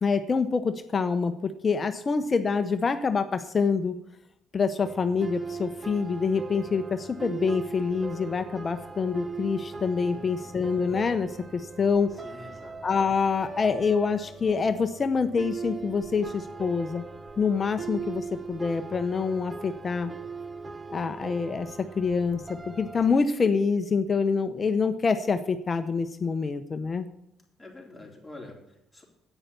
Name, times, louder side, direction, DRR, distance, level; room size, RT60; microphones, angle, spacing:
voice 1, 0.0-4.0 4.5-12.1 12.8-17.0 17.4-20.1 20.9-27.1, left 5 dB, 30° left, 8 dB, 0.8 m, -26 dB
sound 1, 4.8-23.2, right 4 dB, 20° right, 0.6 m, -40 dB
voice 2, 10.1-10.6 12.1-12.8 27.6-29.0, left 2 dB, 5° left, -2 dB, 3.7 m, -47 dB
9.7 x 9.1 x 6.8 m, 0.83 s
cardioid pair, 115°, 0 cm